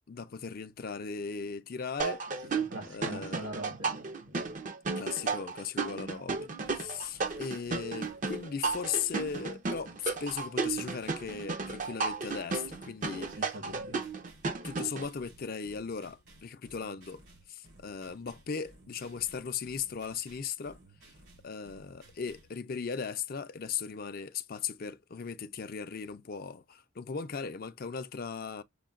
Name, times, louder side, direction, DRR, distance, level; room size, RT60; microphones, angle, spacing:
voice 1, 0.1-2.2 2.9-3.5 5.0-13.6 14.6-17.2 17.5-20.8 21.4-28.6, left 6 dB, 45° left, 0.5 m, -37 dB
sound 1, 2.0-15.1, right 4 dB, 40° right, 0.6 m, -34 dB
voice 2, 2.4-4.5 5.2-5.3 13.2-14.0, right 1 dB, 70° right, 1.6 m, -43 dB
sound 2, 6.6-22.6, right 1 dB, 90° right, 3.6 m, -58 dB
6.5 x 2.2 x 2.4 m
head